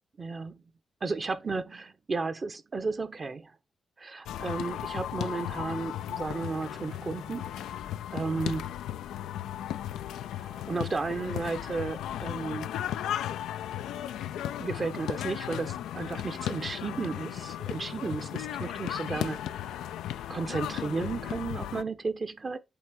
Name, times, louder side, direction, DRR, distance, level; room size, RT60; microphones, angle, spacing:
voice 1, 0.2-0.6 1.0-3.5 4.0-7.8 8.1-8.8 10.4-12.7 14.6-19.8 20.3-22.6, right 4 dB, 45° right, 1.2 m, -34 dB
sound 1, 4.3-21.8, left 11 dB, 80° left, 0.4 m, -36 dB
8.4 x 3.4 x 4.9 m
hypercardioid pair, 40°, 0 cm